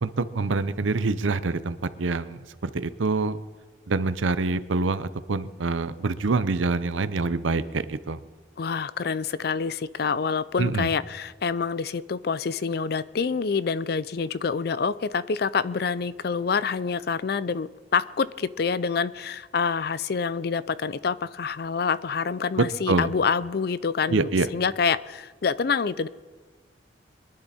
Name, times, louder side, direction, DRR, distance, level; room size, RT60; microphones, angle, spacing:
voice 1, 0.0-3.4 3.9-8.2 10.6-10.9 22.9-23.1 24.1-24.5, right 3 dB, 90° right, 14 dB, 0.7 m, -26 dB
voice 2, 8.6-26.1, left 5 dB, 55° left, 17 dB, 0.4 m, -27 dB
22.5 x 11.0 x 4.3 m, 1.4 s
head